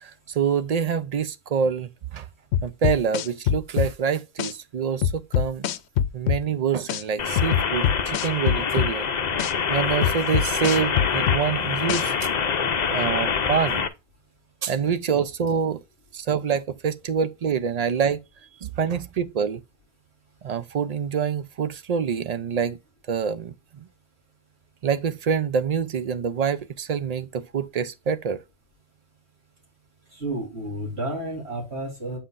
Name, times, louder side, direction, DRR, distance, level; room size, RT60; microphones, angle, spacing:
voice 1, 0.0-2.3 2.6-5.7 6.1-9.1 9.7-12.1 12.9-13.9 14.6-15.8 16.1-18.2 18.6-19.6 20.4-22.8 23.1-23.9 24.8-28.4, right 7 dB, 50° right, 0.5 m, -26 dB
sound 1, 2.5-3.9 4.4-4.5 5.0-6.4 6.9-7.0 7.4-8.9 9.4-9.5 10.0-11.4 11.9-12.0, left 9 dB, 80° left, 0.8 m, -23 dB
sound 2, 7.2-13.9, left 6 dB, 45° left, 0.7 m, -25 dB
voice 2, 30.1-32.2, right 1 dB, 70° right, 3.6 m, -31 dB
8.4 x 5.6 x 2.5 m
omnidirectional pair, 1.1 m